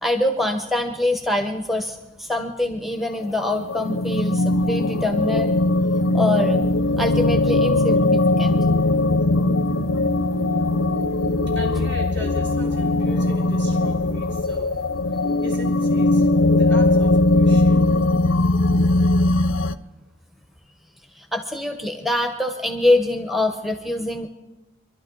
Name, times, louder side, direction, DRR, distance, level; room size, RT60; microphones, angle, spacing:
voice 1, 0.0-5.6 6.1-6.7 7.0-8.6 21.1-24.3, left 1 dB, ahead, 0.8 m, -24 dB
sound 1, 3.3-19.7, left 2 dB, 75° left, 0.6 m, -20 dB
voice 2, 11.5-14.9 15.4-17.8, left 1 dB, 60° right, 3.7 m, -38 dB
26.0 x 12.0 x 3.8 m
head